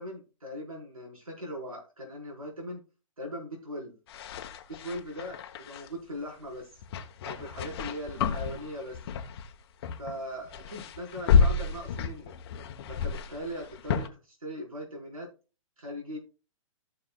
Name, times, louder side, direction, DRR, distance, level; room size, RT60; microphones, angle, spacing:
voice 1, 0.0-2.8 3.2-3.9 4.7-6.7 7.2-9.0 10.0-12.3 12.9-15.3 15.8-16.2, equal, 85° right, -2 dB, 4.6 m, -39 dB
sound 1, 4.1-5.9 6.8-9.5 9.8-10.2 10.5-14.1, left 5 dB, 45° left, 1.0 m, -30 dB
14.5 x 6.8 x 2.3 m, 0.33 s
figure-of-eight pair, 120°, 18 cm